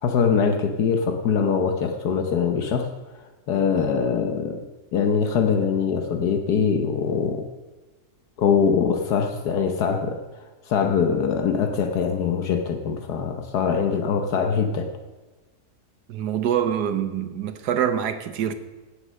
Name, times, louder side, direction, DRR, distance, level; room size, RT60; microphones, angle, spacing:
voice 1, 0.0-2.9 3.5-4.6 4.9-7.5 8.4-10.2 10.7-14.9, left 6 dB, 75° left, 1.5 m, -23 dB
voice 2, 16.1-18.5, right 9 dB, 80° right, 1.5 m, -25 dB
17.0 x 6.7 x 6.4 m
omnidirectional pair, 1.7 m